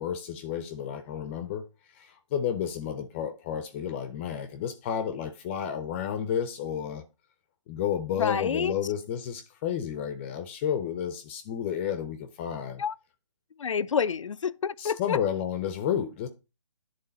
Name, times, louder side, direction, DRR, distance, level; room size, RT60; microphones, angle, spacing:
voice 1, 0.0-1.6 1.9-7.0 7.7-12.8 14.8-16.3, left 9 dB, 25° left, 0.6 m, -31 dB
voice 2, 8.1-8.7 12.8-12.9 13.6-15.2, left 6 dB, 75° left, 0.5 m, -28 dB
10.5 x 3.9 x 4.0 m
hypercardioid pair, 150°, 16 cm